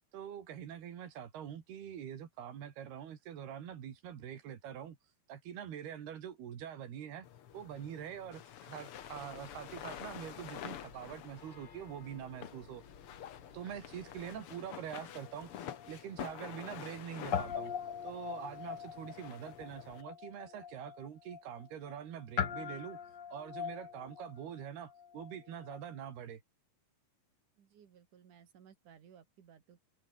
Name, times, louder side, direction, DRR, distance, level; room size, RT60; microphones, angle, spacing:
voice 1, 0.1-5.0 5.3-7.3 7.5-12.8 13.5-17.7 18.0-23.0 23.3-26.4, right 9 dB, 85° right, 4.6 m, -45 dB
sound 1, 7.2-20.0, left 10 dB, 75° left, 1.3 m, -49 dB
sound 2, 8.9-14.4, left 5 dB, 35° left, 2.7 m, -58 dB
Guitar, 15.2-17.0 17.3-25.9, left 7 dB, 55° left, 1.2 m, -42 dB
voice 2, 27.6-29.9, right 8 dB, 55° right, 3.9 m, -60 dB
omnidirectional pair, 4.5 m